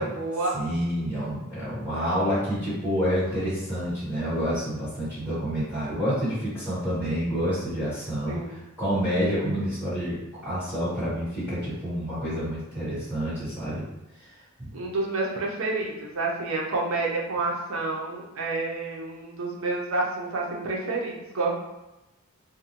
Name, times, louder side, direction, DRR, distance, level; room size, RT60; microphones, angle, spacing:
voice 1, 0.0-0.6 8.3-8.6 9.2-9.5 14.7-21.5, right 3 dB, 60° right, -2 dB, 0.5 m, -29 dB
voice 2, 0.5-13.8 14.1-14.3 14.6-14.7, equal, 5° right, -13 dB, 1.3 m, -28 dB
2.6 x 2.1 x 2.8 m, 0.97 s
head